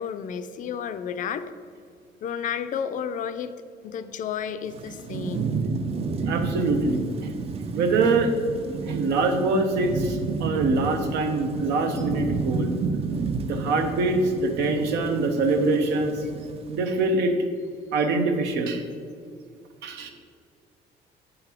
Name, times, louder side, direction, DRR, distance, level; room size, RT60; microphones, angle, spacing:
voice 1, 0.0-1.5 2.2-3.5 3.8-5.6, left 7 dB, 50° left, 11 dB, 0.4 m, -31 dB
Thunderstorm / Rain, 4.7-16.9, right 4 dB, 35° right, 0.4 m, -31 dB
voice 2, 6.3-7.3 7.7-8.3 8.9-12.7 13.4-16.2 16.7-17.3 17.9-18.8 19.8-20.1, right 3 dB, 85° right, 5 dB, 0.8 m, -24 dB
7.8 x 3.9 x 4.4 m, 2.2 s
cardioid pair, 110°, 17 cm